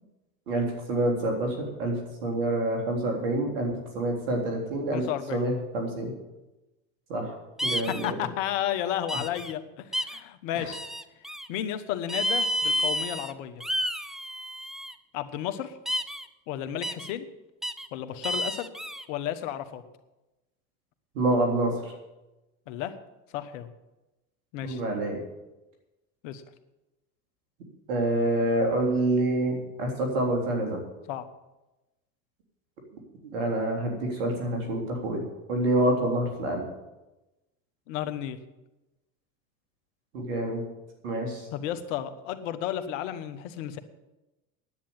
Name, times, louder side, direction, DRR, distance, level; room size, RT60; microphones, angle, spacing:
voice 1, 0.5-5.0 5.3-6.1 7.1-7.3 7.6-8.3 10.5-10.6 21.1-21.7 24.6-25.2 27.9-30.8 33.2-35.2 35.5-36.6 40.1-40.6 41.0-41.5, right 1 dB, 80° right, 2 dB, 3.7 m, -27 dB
voice 2, 4.9-5.4 7.9-10.8 11.5-13.6 15.1-15.7 16.5-17.3 17.9-18.7 19.1-19.8 22.7-22.9 23.3-23.7 24.5-24.8 26.2-26.4 31.1-31.3 37.9-38.4 41.5-43.8, left 11 dB, 75° left, 11 dB, 1.2 m, -32 dB
sound 1, 7.6-8.1 9.1-9.5 9.9-10.2 10.7-11.5 12.1-13.3 13.6-14.9 15.8-16.2 16.8-17.1 17.6-17.9 18.2-19.0, equal, ahead, 0.6 m, -30 dB
10.0 x 8.8 x 8.8 m, 1.0 s
hypercardioid pair, 85°, 38 cm